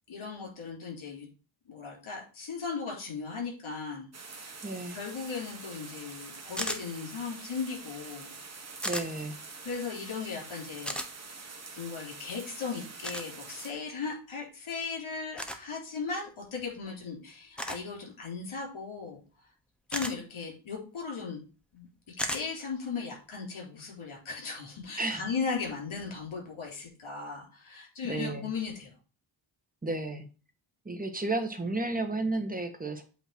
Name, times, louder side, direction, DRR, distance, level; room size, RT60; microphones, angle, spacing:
voice 1, 0.1-1.3 1.7-8.3 8.8-8.9 9.6-11.0 11.8-19.2 19.9-21.4 21.7-28.9, left 5 dB, 80° left, -1 dB, 3.9 m, -37 dB
sound 1, 4.1-13.7, right 4 dB, 35° right, 1.3 m, -46 dB
voice 2, 4.6-5.0 8.8-9.4 25.0-25.2 28.0-28.5 29.8-30.3 30.8-33.0, right 2 dB, 20° right, 6 dB, 1.4 m, -32 dB
sound 2, 6.6-6.8 8.8-9.1 10.9-11.1 13.0-13.3 15.4-15.6 17.6-17.9 19.9-20.1 22.2-22.4, equal, ahead, 1.0 m, -33 dB
8.5 x 3.1 x 6.0 m, 0.35 s
wide cardioid pair, 95°, 47 cm